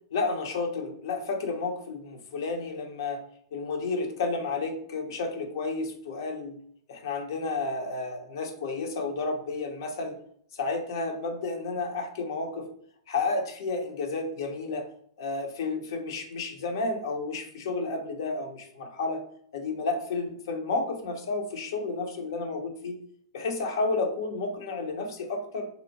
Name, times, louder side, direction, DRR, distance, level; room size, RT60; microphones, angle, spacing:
voice 1, 0.1-3.2 3.5-6.5 6.9-10.1 10.5-12.7 13.1-14.9 15.2-19.2 19.5-23.0 23.3-25.7, left 3 dB, 60° left, 4 dB, 0.6 m, -31 dB
2.7 x 2.1 x 2.8 m, 0.65 s
figure-of-eight pair, 105°, 3 cm